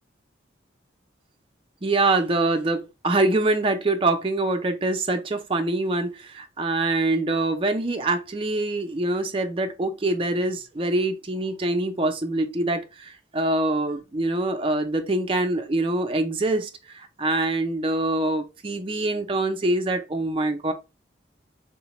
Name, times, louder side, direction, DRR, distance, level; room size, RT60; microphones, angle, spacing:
voice 1, 1.8-20.7, right 2 dB, 30° right, 0.5 m, -24 dB
3.9 x 2.2 x 2.9 m
head